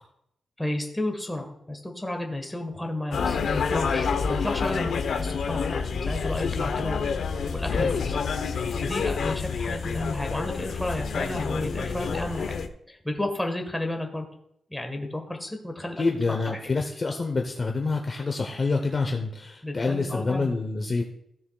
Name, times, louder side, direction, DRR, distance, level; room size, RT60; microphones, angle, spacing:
voice 1, 0.6-7.1 7.5-8.2 8.8-12.5 12.9-14.3 14.7-16.6 19.6-20.5, left 1 dB, 5° left, 3 dB, 1.4 m, -32 dB
sound 1, 3.1-12.7, left 5 dB, 65° left, 0.8 m, -28 dB
voice 2, 16.0-21.0, left 3 dB, 30° left, 2 dB, 0.8 m, -27 dB
16.0 x 7.0 x 2.3 m, 0.76 s
wide cardioid pair, 165°, 0 cm